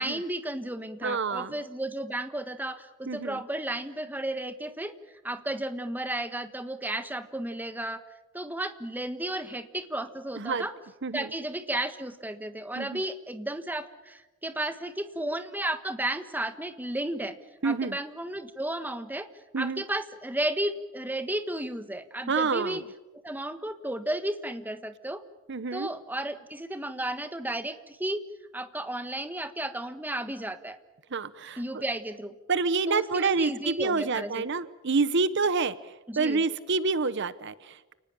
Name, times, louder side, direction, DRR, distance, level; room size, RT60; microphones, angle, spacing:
voice 1, 0.0-4.9 5.2-8.0 8.3-10.7 11.1-17.4 17.6-19.3 19.6-22.8 23.2-25.2 25.7-28.2 28.5-30.8 31.6-32.3 32.9-34.5 36.1-36.4, right 1 dB, 10° right, 10 dB, 1.4 m, -33 dB
voice 2, 1.0-1.6 3.1-3.4 10.3-10.6 11.0-11.3 12.8-13.0 17.6-18.0 19.5-19.8 22.3-22.8 25.5-25.9 31.1-31.8 32.5-37.9, right 4 dB, 60° right, 15 dB, 0.8 m, -28 dB
29.5 x 19.5 x 8.8 m, 1.1 s
head